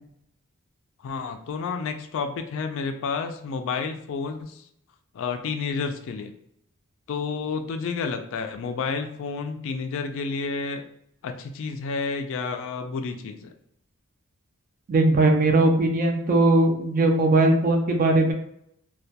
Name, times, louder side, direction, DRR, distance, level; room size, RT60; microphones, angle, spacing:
voice 1, 1.0-4.6 5.1-6.3 7.1-10.8 11.2-13.5, left 5 dB, 60° left, 7 dB, 0.3 m, -30 dB
voice 2, 14.9-18.3, right 2 dB, 40° right, 3 dB, 0.4 m, -19 dB
2.2 x 2.2 x 2.7 m, 0.72 s
head